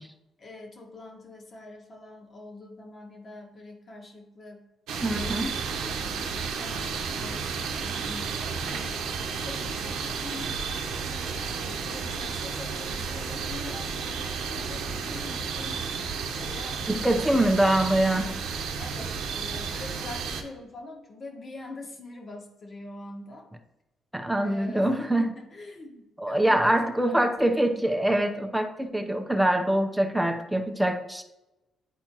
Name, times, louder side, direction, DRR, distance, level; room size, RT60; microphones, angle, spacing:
voice 1, 0.4-4.7 5.0-6.1 6.6-10.6 11.4-15.9 16.4-18.3 18.8-23.5 24.4-27.9, left 2 dB, 45° left, 1 dB, 1.6 m, -44 dB
sound 1, 4.9-20.4, right 5 dB, 90° right, 0.8 m, -32 dB
voice 2, 5.0-5.5 16.9-18.3 24.1-25.3 26.2-31.2, right 1 dB, 5° right, 4 dB, 0.8 m, -24 dB
10.0 x 4.2 x 3.0 m, 0.98 s
cardioid pair, 90°, 0 cm